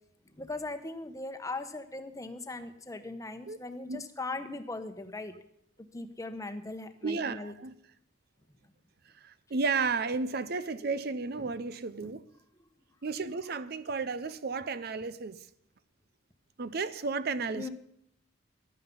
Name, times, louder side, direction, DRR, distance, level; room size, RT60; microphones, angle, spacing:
voice 1, 0.4-5.3 5.9-7.5 11.4-11.5 12.0-12.1 17.5-17.7, left 2 dB, 15° left, 1.0 m, -39 dB
voice 2, 7.0-7.7 9.2-12.2 13.0-15.5 16.6-17.7, right 4 dB, 55° right, 0.6 m, -33 dB
15.5 x 11.5 x 5.4 m
head